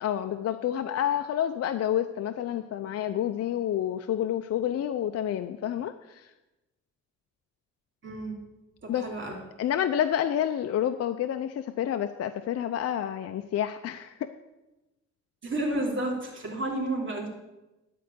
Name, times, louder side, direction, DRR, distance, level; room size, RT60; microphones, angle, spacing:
voice 1, 0.0-6.3 8.9-9.0 9.6-14.3, left 10 dB, 55° left, 8 dB, 0.5 m, -29 dB
voice 2, 8.0-8.3 8.8-9.4 15.4-17.3, right 1 dB, 40° right, -1 dB, 2.8 m, -31 dB
11.0 x 4.7 x 8.1 m, 1.0 s
cardioid pair, 90°, 30 cm